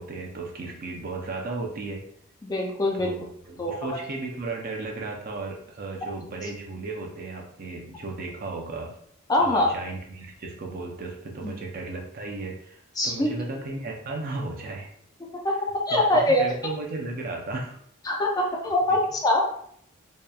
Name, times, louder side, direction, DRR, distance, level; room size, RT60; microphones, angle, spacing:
voice 1, 0.0-2.0 3.0-9.0 9.4-12.8 13.0-14.9 16.1-17.8, right 3 dB, 45° right, 1 dB, 0.4 m, -35 dB
voice 2, 2.4-3.1 3.6-3.8 9.3-9.7 11.4-11.5 13.0-13.3 15.4-15.5 15.9-16.4 18.1-19.4, left 1 dB, 20° left, 0 dB, 0.4 m, -23 dB
2.7 x 2.1 x 2.3 m, 0.66 s
head